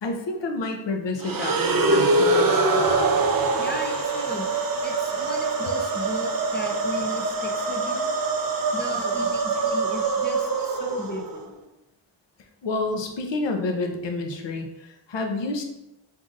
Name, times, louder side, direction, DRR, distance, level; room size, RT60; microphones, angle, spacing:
voice 1, 0.0-2.7 12.6-15.6, left 2 dB, 60° left, 3 dB, 0.6 m, -29 dB
sound 1, 1.2-11.4, right 3 dB, 45° right, 0.5 m, -24 dB
voice 2, 3.6-4.5 4.8-8.1 8.7-11.4, left 1 dB, 25° left, 2 dB, 0.4 m, -36 dB
5.1 x 2.6 x 2.4 m, 0.91 s
wide cardioid pair, 105°, 50 cm